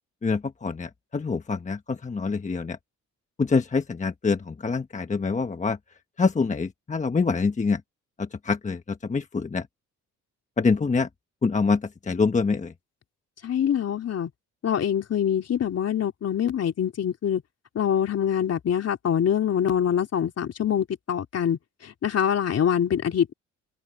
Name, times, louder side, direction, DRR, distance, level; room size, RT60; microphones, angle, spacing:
voice 1, 0.2-2.8 3.4-5.8 6.2-7.8 8.2-9.7 10.6-11.1 11.4-12.7, left 4 dB, 25° left, 1.2 m, -25 dB
voice 2, 13.4-14.3 14.6-17.4 17.7-23.3, left 9 dB, 55° left, 3.5 m, -25 dB
cardioid pair, 90°, 30 cm